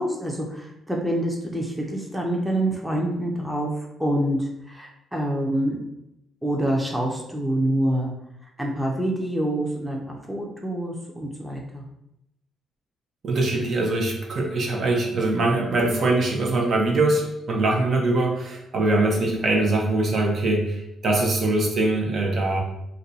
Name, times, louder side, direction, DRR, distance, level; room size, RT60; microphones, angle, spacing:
voice 1, 0.0-5.8 6.4-8.1 8.6-11.8, right 1 dB, 5° right, -1 dB, 0.6 m, -26 dB
voice 2, 13.2-22.6, right 2 dB, 55° right, 0 dB, 0.7 m, -22 dB
2.6 x 2.2 x 3.9 m, 0.82 s
cardioid pair, 90°, 0 cm